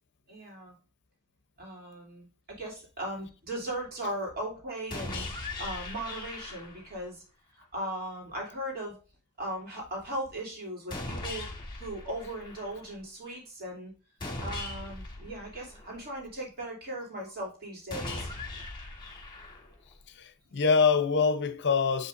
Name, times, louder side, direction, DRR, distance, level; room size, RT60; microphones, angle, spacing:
voice 1, 0.3-0.7 1.6-7.2 7.5-9.0 9.4-11.5 11.8-13.9 14.4-18.3, right 1 dB, 45° right, 3.0 m, -38 dB
sound 1, 4.9-6.9 10.9-12.9 14.2-16.2 17.9-19.9, left 2 dB, 20° left, 1.5 m, -39 dB
voice 2, 20.1-22.1, left 5 dB, 55° left, 0.8 m, -25 dB
7.5 x 5.5 x 2.5 m
head